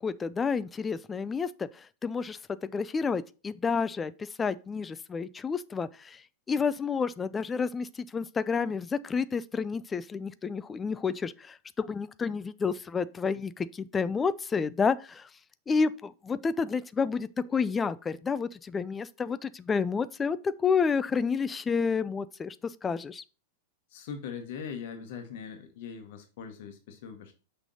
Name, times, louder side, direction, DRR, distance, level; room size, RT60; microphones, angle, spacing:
voice 1, 0.0-15.3 15.7-23.2, left 5 dB, 15° left, 0.3 m, -30 dB
voice 2, 23.9-27.3, left 6 dB, 50° left, 1.1 m, -41 dB
5.9 x 3.4 x 5.3 m
figure-of-eight pair, 90°, 0 cm